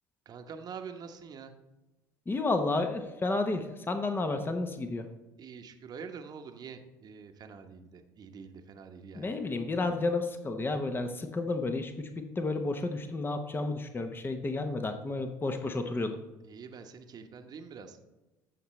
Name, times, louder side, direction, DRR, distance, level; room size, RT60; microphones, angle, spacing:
voice 1, 0.2-1.5 5.4-9.3 16.4-18.0, right 6 dB, 45° right, 6 dB, 1.1 m, -45 dB
voice 2, 2.3-5.1 9.1-16.2, left 3 dB, 25° left, 6 dB, 1.0 m, -31 dB
13.5 x 5.8 x 3.2 m, 1.1 s
hypercardioid pair, 65°, 9 cm